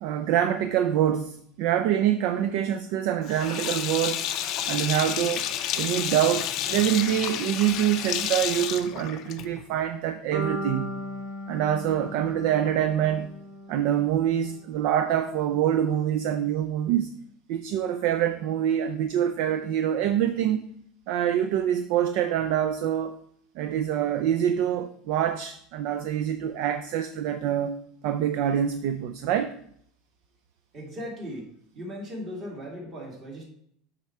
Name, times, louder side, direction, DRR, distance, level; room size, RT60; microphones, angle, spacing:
voice 1, 0.0-4.3 4.7-5.5 5.8-11.0 11.5-13.3 13.7-17.1 17.5-20.7 21.1-23.2 23.6-27.7 28.0-29.5, right 10 dB, 55° right, 9 dB, 0.4 m, -25 dB
Sink (filling or washing), 3.3-9.7, left 10 dB, 40° left, 0.5 m, -30 dB
sound 1, 10.3-14.4, equal, 90° right, 2.4 m, -37 dB
voice 2, 30.7-33.4, equal, 30° right, -1 dB, 2.1 m, -38 dB
7.5 x 4.4 x 4.6 m, 0.66 s
supercardioid pair, 170°, 0 cm